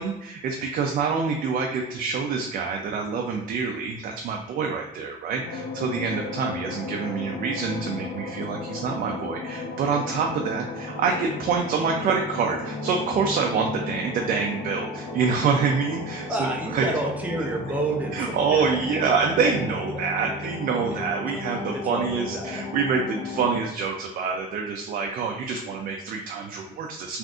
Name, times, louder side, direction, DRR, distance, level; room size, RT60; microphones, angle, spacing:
voice 1, 0.0-16.3 16.7-16.9 18.1-27.2, right 5 dB, 55° right, 2 dB, 0.4 m, -26 dB
sound 1, 5.4-23.5, left 3 dB, 40° left, 0.5 m, -34 dB
voice 2, 16.3-18.7 19.4-19.5 20.2-20.5 20.9-21.0 21.7-22.6, right 2 dB, 10° right, 0 dB, 0.6 m, -30 dB
3.6 x 2.5 x 2.4 m, 0.87 s
cardioid pair, 110°, 17 cm